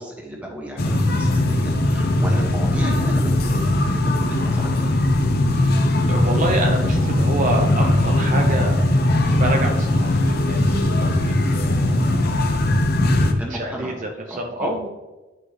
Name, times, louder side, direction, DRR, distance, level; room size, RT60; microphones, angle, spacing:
voice 1, 0.0-4.9 11.4-11.6 13.4-14.9, equal, 5° right, -2 dB, 1.8 m, -34 dB
sound 1, 0.8-13.3, left 1 dB, 55° left, 0.8 m, -19 dB
voice 2, 5.5-9.0 9.3-12.5 13.1-14.9, right 1 dB, 40° right, 1 dB, 0.7 m, -28 dB
10.0 x 5.9 x 3.2 m, 1.1 s
head